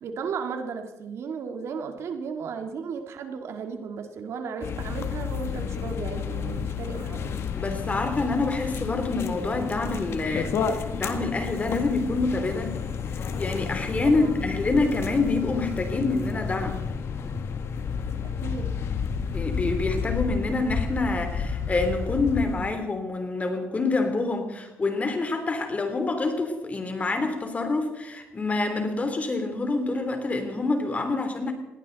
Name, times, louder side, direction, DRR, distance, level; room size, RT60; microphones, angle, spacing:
voice 1, 0.0-7.3 14.0-14.4 18.2-18.8, right 5 dB, 75° right, 6 dB, 2.0 m, -35 dB
sound 1, 4.6-22.7, left 6 dB, 65° left, 1.7 m, -31 dB
voice 2, 7.6-12.8 13.2-16.8 19.3-31.5, left 3 dB, 30° left, 6 dB, 3.3 m, -27 dB
20.0 x 17.0 x 4.1 m, 1.0 s
cardioid pair, 95°, 5 cm